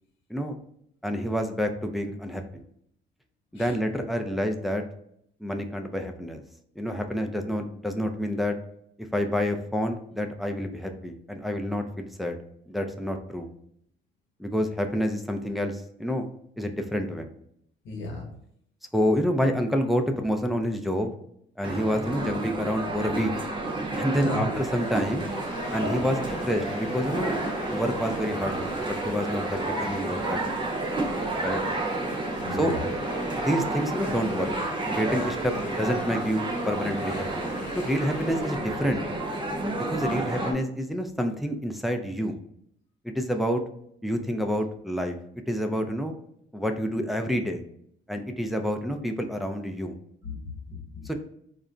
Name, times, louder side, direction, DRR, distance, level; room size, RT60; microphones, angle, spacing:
voice 1, 1.0-2.4 3.5-4.8 5.4-6.4 6.8-8.6 9.1-12.4 12.7-13.5 14.4-16.3 16.6-17.3 18.9-21.1 21.6-23.4 24.0-25.3 25.7-27.4 27.7-30.4 31.4-31.6 32.6-32.7 33.3-34.5 34.9-37.5 37.8-39.0 39.8-42.4 43.0-43.6 44.0-45.2 45.5-46.1 46.5-47.6 48.1-50.0 51.0-51.1, equal, ahead, 4 dB, 0.4 m, -28 dB
voice 2, 17.8-18.3 24.2-24.4 32.4-32.8 50.2-51.1, left 2 dB, 75° left, 0 dB, 0.9 m, -35 dB
sound 1, 21.6-40.5, right 2 dB, 25° right, 0.7 m, -30 dB
sound 2, 24.5-38.6, left 2 dB, 40° left, 1.0 m, -43 dB
2.5 x 2.1 x 3.7 m, 0.71 s
cardioid pair, 90°, 20 cm